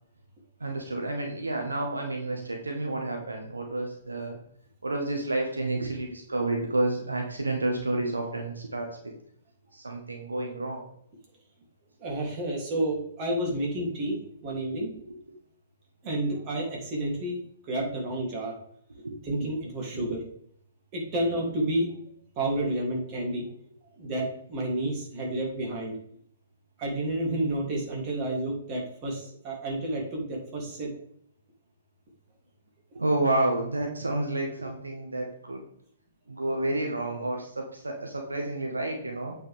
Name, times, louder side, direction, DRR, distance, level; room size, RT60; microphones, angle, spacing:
voice 1, 0.6-4.4 4.8-9.1 9.7-10.8 14.7-15.2 19.0-19.2 19.9-20.1 32.9-35.6 36.3-39.4, right 2 dB, 85° right, 2 dB, 1.6 m, -30 dB
voice 2, 12.0-14.9 16.0-17.4 17.7-18.5 19.2-20.2 20.9-21.9 22.3-23.5 24.0-25.9 26.8-30.9, right 1 dB, 35° right, -2 dB, 3.1 m, -30 dB
8.7 x 5.5 x 3.6 m, 0.69 s
figure-of-eight pair, 120°, 0 cm